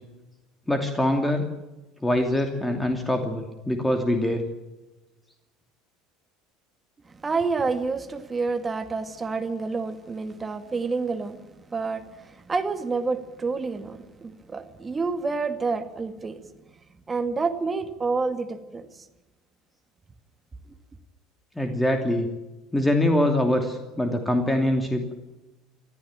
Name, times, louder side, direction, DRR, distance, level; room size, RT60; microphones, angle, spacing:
voice 1, 0.7-1.5 2.0-4.4 21.6-22.3 22.7-25.0, left 1 dB, 10° left, 2.8 m, -24 dB
voice 2, 7.2-16.4 17.1-19.1, right 4 dB, 20° right, 2.2 m, -29 dB
25.0 x 15.0 x 8.9 m
figure-of-eight pair, 65°, 0 cm